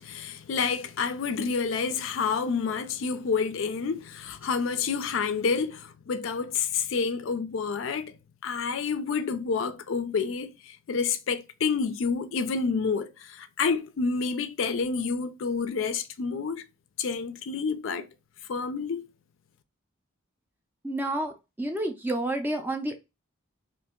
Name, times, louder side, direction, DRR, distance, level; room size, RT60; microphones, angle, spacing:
voice 1, 0.0-8.1 8.4-16.6 17.0-18.1 18.5-19.0, left 5 dB, 65° left, 0.4 m, -29 dB
voice 2, 20.8-23.0, right 1 dB, 10° right, 0.4 m, -30 dB
2.7 x 2.5 x 3.6 m
head